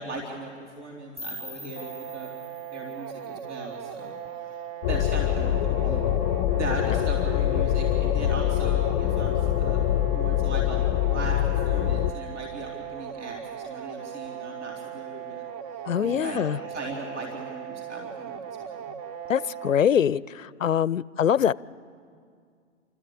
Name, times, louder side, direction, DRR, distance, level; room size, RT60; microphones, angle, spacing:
voice 1, 0.0-2.3 2.7-4.6 4.9-6.1 6.6-15.5 16.0-18.9, right 2 dB, 65° right, -1 dB, 3.7 m, -38 dB
sound 1, 1.2-4.1, equal, 20° right, 2.4 m, -43 dB
sound 2, 1.8-19.8, right 9 dB, 35° right, 0.9 m, -38 dB
sound 3, 4.8-12.1, left 13 dB, 25° left, 0.6 m, -24 dB
voice 2, 15.8-16.6 19.3-21.5, left 9 dB, 90° left, 22 dB, 0.5 m, -23 dB
28.5 x 13.5 x 8.7 m, 2.2 s
figure-of-eight pair, 115°, 38 cm